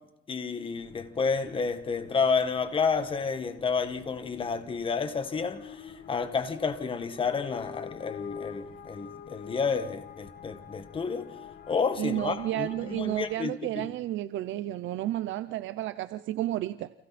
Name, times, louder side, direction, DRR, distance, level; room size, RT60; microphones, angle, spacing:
voice 1, 0.3-11.3 11.7-13.9, left 5 dB, 25° left, 1.8 m, -30 dB
sound 1, 0.7-13.4, left 8 dB, 55° left, 2.1 m, -47 dB
voice 2, 12.0-16.9, right 14 dB, 75° right, 0.8 m, -32 dB
30.0 x 27.5 x 4.3 m
cardioid pair, 160°, 20 cm